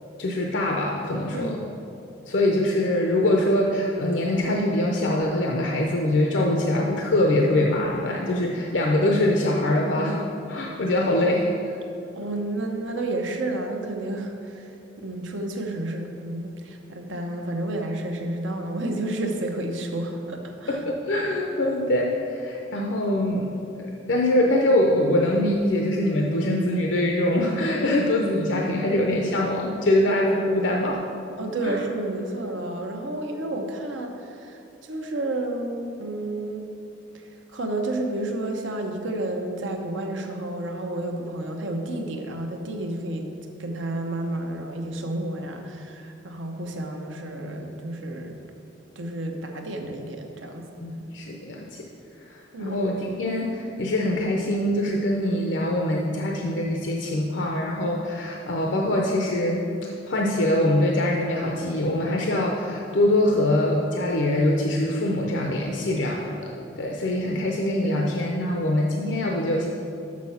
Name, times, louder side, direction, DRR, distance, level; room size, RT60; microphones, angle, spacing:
voice 1, 0.2-1.6 2.3-10.2 10.5-11.7 17.1-17.2 20.7-23.5 23.8-31.0 31.6-31.8 50.8-51.8 52.3-59.7 60.1-66.5 66.8-69.7, left 1 dB, 75° left, 0 dB, 0.6 m, -23 dB
voice 2, 1.3-1.6 12.1-14.7 15.0-20.8 31.4-36.7 37.1-43.3 43.6-48.3 49.0-50.7 52.5-52.8, right 1 dB, 80° right, 3 dB, 0.9 m, -31 dB
6.4 x 6.2 x 5.7 m, 2.7 s
head